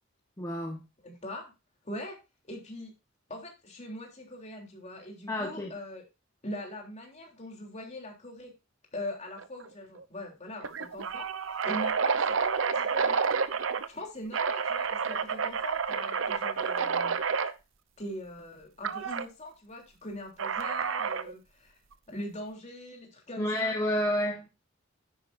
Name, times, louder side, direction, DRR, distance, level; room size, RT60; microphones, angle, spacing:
voice 1, 0.4-0.8 5.3-5.7 23.4-24.5, left 1 dB, 15° left, 1.1 m, -30 dB
voice 2, 1.0-1.5 1.8-2.2 2.4-2.9 3.3-6.0 6.4-8.5 8.9-13.2 13.9-17.1 18.0-21.8 22.1-23.8, left 1 dB, 35° left, 3.2 m, -42 dB
sound 1, 9.4-9.7 10.0-10.1 10.6-13.9 14.3-17.5 18.8-19.3 20.4-21.3, right 5 dB, 70° right, 0.7 m, -29 dB
10.0 x 8.9 x 2.6 m
head